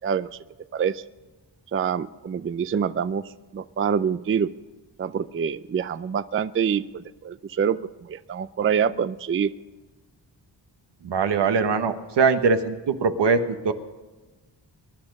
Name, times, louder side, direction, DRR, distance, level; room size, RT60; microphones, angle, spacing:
voice 1, 0.0-0.4 0.7-1.0 1.7-4.5 5.0-9.5, right 7 dB, 30° right, 15 dB, 0.4 m, -26 dB
voice 2, 11.0-13.4 13.6-13.7, right 5 dB, 75° right, 8 dB, 1.2 m, -21 dB
22.5 x 10.5 x 5.4 m, 1.2 s
cardioid pair, 80°, 42 cm